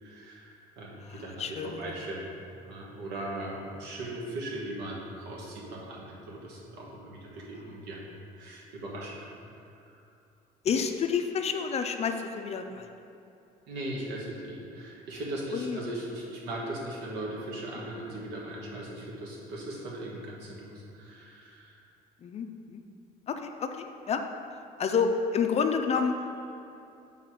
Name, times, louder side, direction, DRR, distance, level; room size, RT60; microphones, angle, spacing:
voice 1, 0.0-9.4 9.9-10.0 13.7-21.8, right 1 dB, 85° right, -3 dB, 1.3 m, -39 dB
voice 2, 1.1-1.9 10.6-12.9 15.5-15.8 22.2-22.8 23.3-24.2 24.8-26.2, left 6 dB, 40° left, 6 dB, 0.4 m, -29 dB
5.9 x 3.9 x 4.7 m, 2.7 s
cardioid pair, 110°, 17 cm